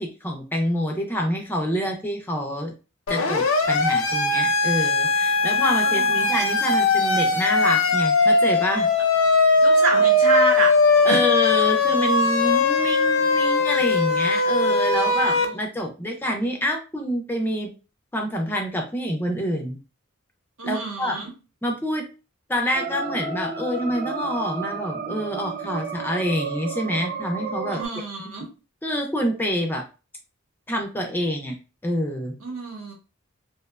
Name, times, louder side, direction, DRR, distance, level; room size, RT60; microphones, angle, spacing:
voice 1, 0.0-2.7 3.1-8.9 11.0-17.7 18.1-19.8 20.6-21.2 21.6-22.1 22.5-27.8 28.8-29.9 30.7-31.5 31.8-32.4, equal, 10° left, 2 dB, 0.3 m, -27 dB
Siren, 3.1-15.4, left 3 dB, 70° left, 0.5 m, -20 dB
voice 2, 5.8-6.4 9.6-10.8 11.1-11.2 20.6-21.3 27.7-28.5 32.4-32.9, right 2 dB, 75° right, 2 dB, 0.8 m, -27 dB
sound 1, 22.7-27.9, right 4 dB, 45° right, 0.5 m, -32 dB
2.7 x 2.1 x 2.2 m, 0.32 s
head